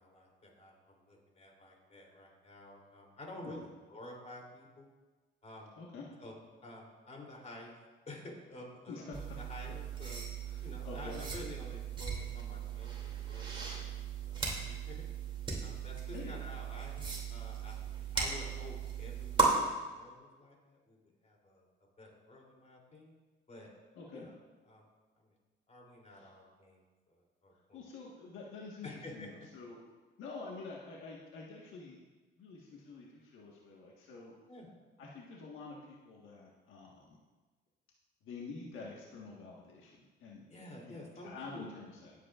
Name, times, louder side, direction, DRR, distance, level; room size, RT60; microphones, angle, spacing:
voice 1, 0.0-4.9 5.4-5.7 6.2-6.4 6.6-7.7 8.1-9.0 9.3-10.2 10.6-15.0 15.6-17.8 18.1-21.6 22.0-23.1 23.5-23.7 24.1-24.4 24.6-24.8 25.2-25.3 25.7-26.8 27.1-27.8 28.8-29.3 34.5-34.7 40.5-41.7, left 1 dB, 35° left, -1 dB, 3.2 m, -50 dB
voice 2, 8.9-9.4 10.5-11.2 16.1-16.3 23.9-24.3 26.1-26.3 27.7-29.8 30.2-32.0 32.4-34.4 35.0-37.2 38.2-40.4 40.8-42.1, left 3 dB, 85° left, -3 dB, 1.6 m, -48 dB
sound 1, 9.1-19.5, right 5 dB, 25° right, 2.7 m, -37 dB
19.0 x 8.2 x 2.5 m, 1.3 s
cardioid pair, 90°, 20 cm